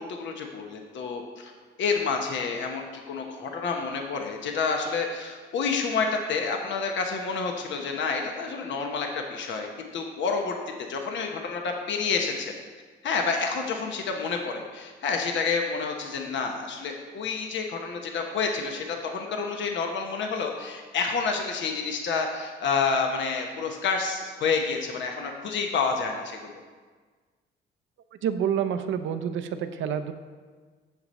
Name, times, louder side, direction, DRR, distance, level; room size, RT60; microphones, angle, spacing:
voice 1, 0.0-1.5 1.8-10.5 10.9-12.5 13.0-26.5, left 5 dB, 70° left, 3 dB, 1.0 m, -29 dB
voice 2, 28.2-30.1, right 8 dB, 75° right, 9 dB, 0.7 m, -28 dB
9.5 x 6.8 x 4.2 m, 1.5 s
cardioid pair, 90°, 20 cm